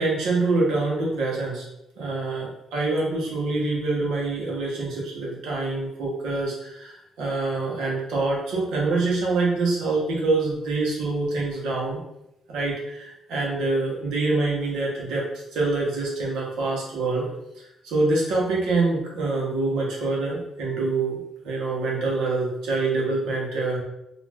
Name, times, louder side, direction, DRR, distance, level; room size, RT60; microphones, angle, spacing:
voice 1, 0.0-1.6 2.0-12.0 12.5-17.3 17.6-23.8, right 3 dB, 90° right, -4 dB, 0.9 m, -25 dB
2.4 x 2.4 x 3.3 m, 0.86 s
cardioid pair, 90°, 0 cm